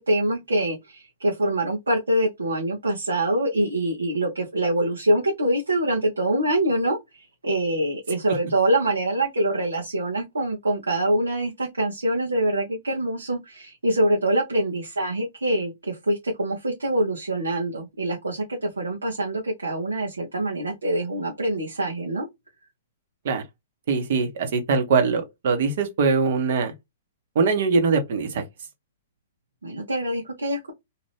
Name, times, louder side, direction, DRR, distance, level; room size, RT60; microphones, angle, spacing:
voice 1, 0.0-22.2 29.6-30.7, right 1 dB, 90° right, 1.0 m, -25 dB
voice 2, 23.9-26.7 27.3-28.4, right 4 dB, 60° right, 1.1 m, -22 dB
2.8 x 2.5 x 3.3 m
hypercardioid pair, 120°, 0 cm